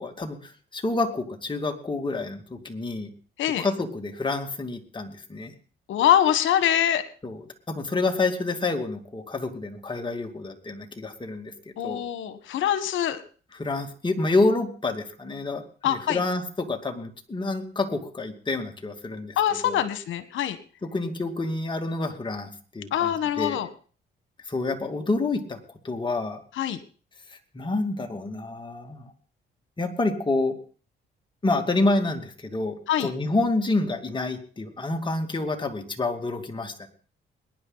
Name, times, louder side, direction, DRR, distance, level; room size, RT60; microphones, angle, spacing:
voice 1, 0.0-3.1 3.6-5.5 7.2-7.4 7.7-11.5 11.8-12.0 13.6-19.4 19.6-19.8 20.8-23.1 23.4-23.6 24.5-25.6 25.8-26.4 27.3-29.1 29.8-30.5 31.4-36.9, left 2 dB, 25° left, 4 dB, 2.3 m, -28 dB
voice 2, 5.9-7.0 11.8-13.2 15.8-16.2 19.4-20.6 22.9-23.7 26.5-26.8 32.9-33.1, left 11 dB, 75° left, 12 dB, 1.4 m, -24 dB
22.0 x 10.5 x 4.0 m, 0.40 s
cardioid pair, 90°, 20 cm